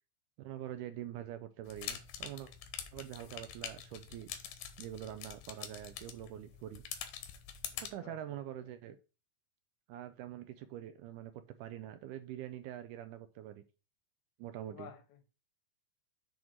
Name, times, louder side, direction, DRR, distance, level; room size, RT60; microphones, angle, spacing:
voice 1, 0.4-2.5 2.9-4.3 4.8-6.8 7.8-9.0 9.9-11.3 11.6-13.6 14.4-14.9, right 11 dB, 85° right, 1.8 m, -45 dB
sound 1, 1.7-7.9, left 9 dB, 85° left, 2.8 m, -45 dB
voice 2, 7.7-8.4 14.7-15.3, left 8 dB, 70° left, 1.9 m, -53 dB
7.8 x 3.7 x 6.0 m
omnidirectional pair, 4.1 m